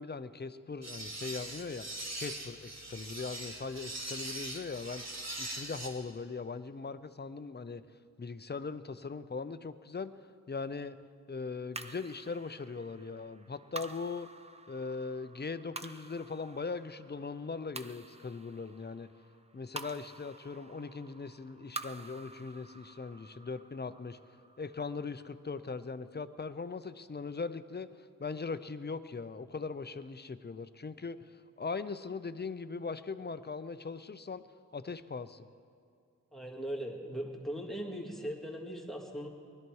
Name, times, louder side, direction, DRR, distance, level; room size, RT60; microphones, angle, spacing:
voice 1, 0.0-1.9 2.1-5.0 5.4-7.8 8.2-10.1 10.5-11.0 11.3-14.3 14.7-19.1 19.5-24.2 24.6-34.4 34.7-35.5, left 4 dB, 30° left, 12 dB, 0.6 m, -40 dB
sound 1, 0.8-5.9, right 1 dB, 50° right, 2.0 m, -41 dB
sound 2, 11.7-26.3, right 2 dB, 20° right, 0.6 m, -49 dB
voice 2, 36.3-39.3, equal, ahead, 0 dB, 2.0 m, -39 dB
20.5 x 12.0 x 4.7 m, 2.4 s
wide cardioid pair, 75°, 33 cm